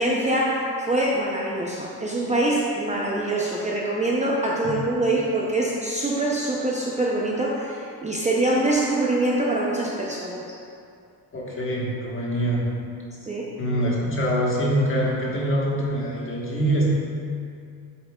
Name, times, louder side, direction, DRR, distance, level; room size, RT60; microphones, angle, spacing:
voice 1, 0.0-10.6 13.2-13.5, right 1 dB, 20° right, -4 dB, 0.6 m, -24 dB
voice 2, 11.3-12.7 13.6-16.9, right 1 dB, 35° left, -4 dB, 1.4 m, -24 dB
7.6 x 7.5 x 2.3 m, 2.4 s
cardioid pair, 145°, 37 cm